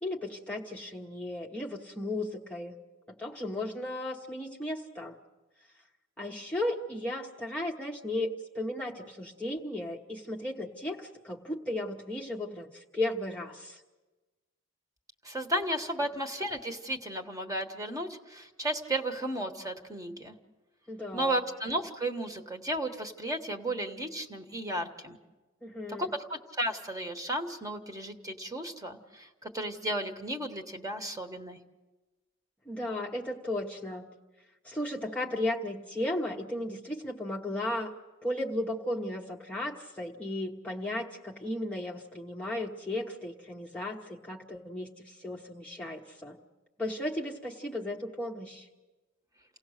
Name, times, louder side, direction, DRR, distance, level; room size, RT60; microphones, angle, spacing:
voice 1, 0.0-2.8 3.1-5.2 6.2-13.8 20.9-21.4 25.6-26.1 32.7-34.1 34.6-37.9 38.2-46.4 46.8-48.7, left 1 dB, 5° left, -2 dB, 0.9 m, -35 dB
voice 2, 15.2-20.3 21.1-25.2 26.0-31.6, right 1 dB, 15° right, 5 dB, 1.3 m, -34 dB
29.0 x 17.5 x 6.5 m, 1.2 s
head